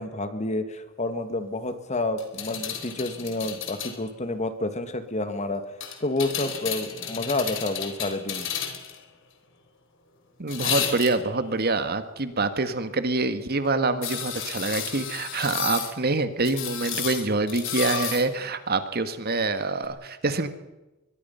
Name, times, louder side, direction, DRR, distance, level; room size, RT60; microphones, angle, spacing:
voice 1, 0.0-5.7 6.0-8.5, left 2 dB, 35° left, 9 dB, 2.2 m, -29 dB
sound 1, 2.2-4.0 5.8-9.0 10.5-11.4 14.0-15.9 16.4-18.3 19.8-19.9, left 8 dB, 65° left, 4.1 m, -32 dB
voice 2, 10.4-20.5, right 3 dB, 50° right, 10 dB, 1.8 m, -26 dB
23.5 x 21.5 x 5.7 m, 1.0 s
head